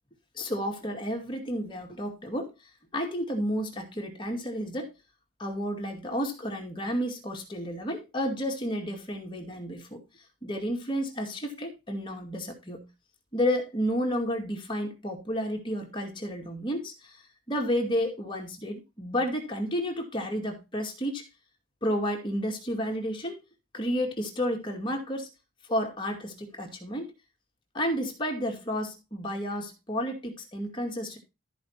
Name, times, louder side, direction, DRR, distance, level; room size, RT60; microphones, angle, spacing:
voice 1, 0.3-2.5 2.9-4.9 5.4-10.0 10.4-12.8 13.3-21.3 21.8-23.4 23.7-25.3 25.7-27.1 27.7-31.2, equal, 25° left, 2.1 m, -31 dB
13.0 x 5.3 x 4.4 m
head